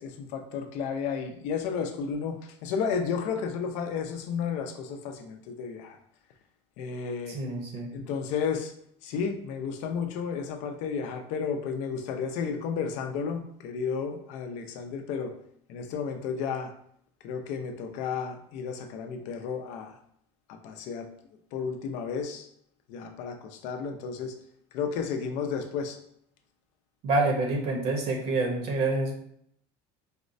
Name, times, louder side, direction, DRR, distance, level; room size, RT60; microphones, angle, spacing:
voice 1, 0.0-6.0 6.8-7.4 7.9-8.7 9.0-15.4 15.7-16.7 17.2-20.0 20.5-21.1 21.5-22.5 22.9-24.4 24.7-26.0, left 6 dB, 70° left, 5 dB, 0.5 m, -32 dB
voice 2, 7.3-7.9 27.0-29.1, right 2 dB, 55° right, 2 dB, 0.7 m, -27 dB
4.2 x 2.1 x 2.6 m, 0.69 s
cardioid pair, 140°, 12 cm